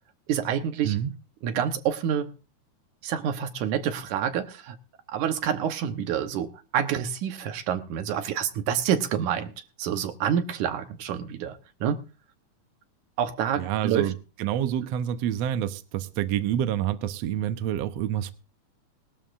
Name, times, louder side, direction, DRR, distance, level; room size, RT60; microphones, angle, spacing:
voice 1, 0.3-1.0 1.4-2.3 3.0-4.8 5.1-9.5 9.8-12.0 13.2-14.1, right 9 dB, 85° right, 2.6 m, -28 dB
voice 2, 13.6-18.3, right 10 dB, 70° right, 1.8 m, -28 dB
20.0 x 12.5 x 2.6 m
omnidirectional pair, 3.4 m